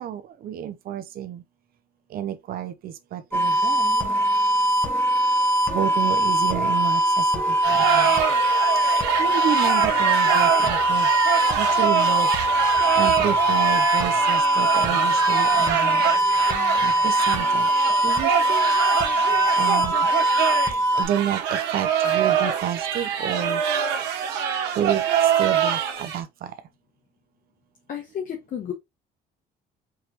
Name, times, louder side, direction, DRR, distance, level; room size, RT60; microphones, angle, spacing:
voice 1, 0.0-1.4 2.1-4.1 5.7-8.1 9.2-11.1 11.5-12.3 12.9-16.0 16.8-17.7 18.0-18.7 19.6-20.1 21.0-23.6 24.8-25.0 25.4-26.3, right 10 dB, 60° right, 0.7 m, -30 dB
sound 1, 3.3-21.0, right 1 dB, 15° left, 1.2 m, -21 dB
sound 2, 7.6-26.2, right 8 dB, 90° right, 1.3 m, -25 dB
voice 2, 27.9-28.7, left 9 dB, 55° left, 1.1 m, -32 dB
4.7 x 3.2 x 3.0 m
cardioid pair, 110°, 17 cm